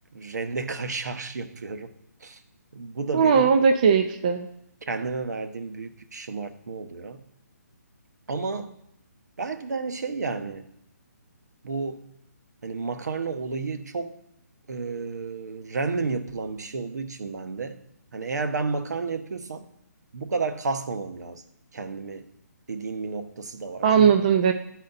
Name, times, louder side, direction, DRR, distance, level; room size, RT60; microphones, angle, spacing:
voice 1, 0.1-1.9 2.2-2.4 2.7-3.5 4.9-7.2 8.3-8.8 9.4-10.7 11.6-12.1 12.6-14.2 14.7-17.8 18.1-19.7 20.1-21.4 21.7-22.3 22.7-24.2, right 4 dB, 75° right, 8 dB, 0.9 m, -31 dB
voice 2, 3.1-4.5 23.8-24.5, right 6 dB, 25° right, 6 dB, 0.3 m, -19 dB
9.9 x 4.2 x 4.0 m, 0.77 s
hypercardioid pair, 165°, 9 cm